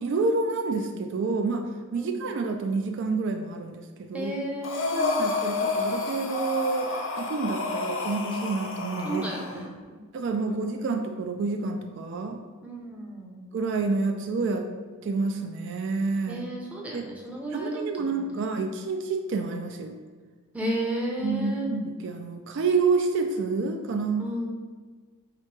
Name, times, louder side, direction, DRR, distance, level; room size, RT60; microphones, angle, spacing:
voice 1, 0.0-4.3 4.9-6.9 7.2-9.7 10.1-12.4 13.5-14.7 15.0-16.5 16.9-17.1 17.5-19.9 21.2-24.3, right 4 dB, 55° right, 5 dB, 0.3 m, -28 dB
voice 2, 1.9-2.3 4.1-5.1 9.0-10.0 10.5-10.9 12.6-13.5 16.3-17.8 18.2-18.4 20.5-21.7 24.2-24.5, right 1 dB, 5° right, -2 dB, 0.6 m, -33 dB
Breathing, 4.6-9.6, left 3 dB, 55° left, 0.5 m, -30 dB
3.3 x 2.9 x 4.6 m, 1.4 s
head